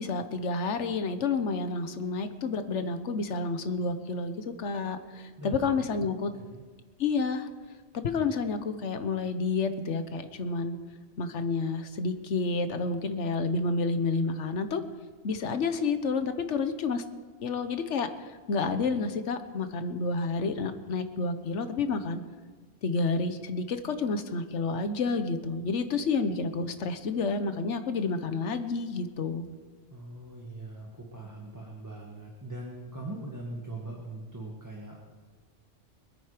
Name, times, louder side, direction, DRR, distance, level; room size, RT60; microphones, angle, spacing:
voice 1, 0.0-6.3 7.0-7.5 7.9-10.8 11.2-14.8 15.2-17.0 17.4-22.2 22.8-29.5, left 4 dB, 80° left, 9 dB, 1.3 m, -30 dB
voice 2, 29.9-35.0, right 2 dB, 15° right, -2 dB, 1.7 m, -41 dB
24.5 x 9.3 x 5.1 m, 1.4 s
omnidirectional pair, 1.2 m